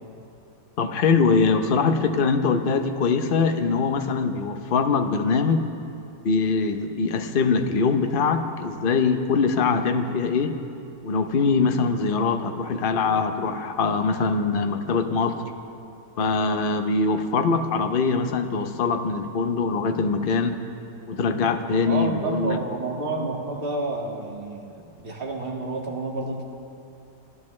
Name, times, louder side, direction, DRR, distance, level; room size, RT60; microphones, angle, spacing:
voice 1, 0.8-5.7 6.2-10.5 11.0-15.4 16.2-20.6 21.1-22.6, left 4 dB, 55° left, 7 dB, 0.6 m, -23 dB
voice 2, 21.8-26.4, right 2 dB, 30° right, -1 dB, 1.8 m, -30 dB
26.5 x 14.0 x 3.2 m, 2.7 s
omnidirectional pair, 1.9 m